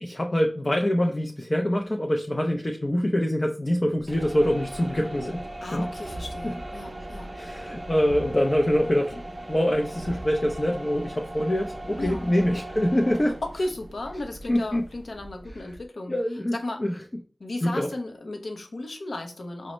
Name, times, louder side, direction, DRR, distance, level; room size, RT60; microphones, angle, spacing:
voice 1, 0.0-5.4 5.7-5.9 6.4-6.5 7.3-9.2 9.5-13.4 14.5-14.8 16.1-17.0 17.6-17.9, equal, 35° left, 0.5 m, -25 dB
sound 1, 4.0-15.8, right 1 dB, 35° right, 0.5 m, -38 dB
voice 2, 5.6-7.3 12.0-12.3 13.4-16.1 16.5-16.9 17.4-19.7, left 2 dB, 85° left, 0.6 m, -35 dB
5.0 x 2.1 x 3.0 m
wide cardioid pair, 60°, 0 cm